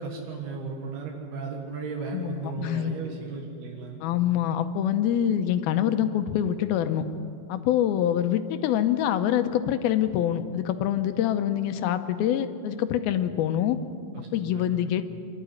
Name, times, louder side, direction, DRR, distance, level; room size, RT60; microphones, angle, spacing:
voice 1, 0.0-4.0 14.2-14.8, right 4 dB, 85° right, 0 dB, 3.7 m, -35 dB
voice 2, 2.1-3.0 4.0-7.1 7.5-13.8 14.3-15.1, left 10 dB, 90° left, 9 dB, 2.6 m, -25 dB
25.0 x 12.0 x 9.4 m, 2.5 s
omnidirectional pair, 4.4 m